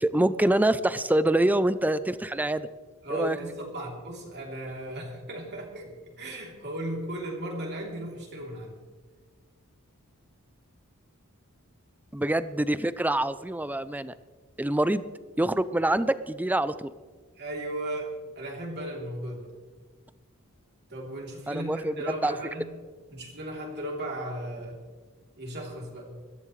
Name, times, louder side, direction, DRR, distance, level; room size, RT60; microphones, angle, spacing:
voice 1, 0.0-2.7 3.1-3.4 12.1-14.1 14.6-15.1 15.4-16.9 21.5-22.0 22.2-22.3, right 1 dB, 10° right, 14 dB, 0.5 m, -25 dB
voice 2, 3.0-8.8 17.4-19.5 20.9-22.7 23.1-24.8 25.4-26.1, right 1 dB, 50° right, -1 dB, 3.3 m, -36 dB
21.5 x 14.5 x 3.2 m, 1.4 s
head